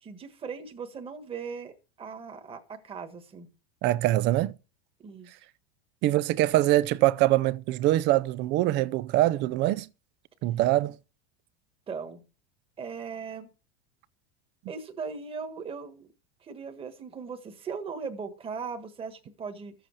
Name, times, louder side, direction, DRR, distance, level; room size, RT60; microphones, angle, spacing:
voice 1, 0.0-3.5 5.0-5.3 11.9-12.2 12.8-13.5 14.7-16.1 16.4-19.7, right 5 dB, 15° right, 1.6 m, -38 dB
voice 2, 3.8-4.5 6.0-9.9 10.4-11.0, right 15 dB, 35° right, 0.6 m, -23 dB
13.5 x 7.9 x 6.4 m
supercardioid pair, 155°, 33 cm